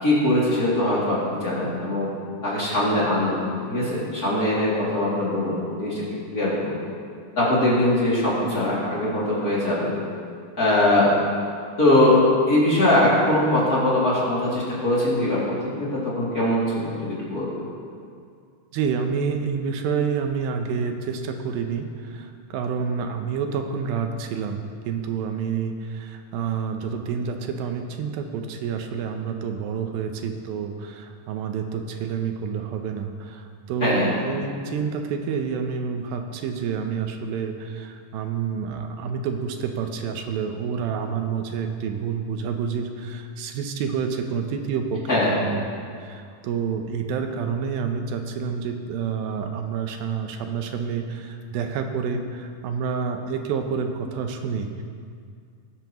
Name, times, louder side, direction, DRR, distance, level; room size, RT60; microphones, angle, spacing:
voice 1, 0.0-2.1 2.4-3.4 3.7-6.0 6.3-6.7 7.4-9.9 10.6-11.1 11.8-12.2 12.5-17.5 33.8-34.2 45.1-45.3, left 1 dB, 25° left, -8 dB, 2.7 m, -21 dB
voice 2, 18.7-45.7 46.0-54.8, right 6 dB, 80° right, 5 dB, 2.6 m, -28 dB
20.5 x 10.5 x 3.1 m, 2.3 s
omnidirectional pair, 4.2 m